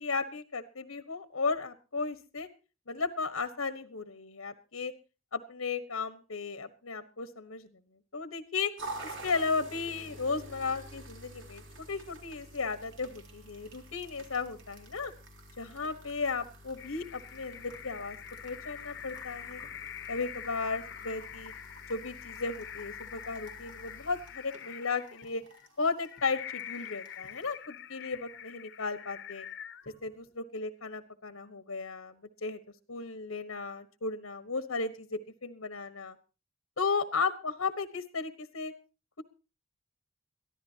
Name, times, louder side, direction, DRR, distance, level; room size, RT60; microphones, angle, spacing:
voice 1, 0.0-2.5 2.9-4.9 5.3-7.7 8.1-8.7 9.0-15.1 15.6-18.2 18.4-19.6 20.1-21.5 21.9-25.4 25.8-29.5 30.0-32.6 32.9-36.1 36.8-38.7, left 4 dB, 85° left, 11 dB, 1.4 m, -35 dB
sound 1, 8.8-27.6, right 2 dB, 60° right, 3.6 m, -49 dB
sound 2, 16.8-30.3, left 9 dB, 60° left, 1.1 m, -45 dB
22.5 x 14.5 x 2.9 m, 0.34 s
head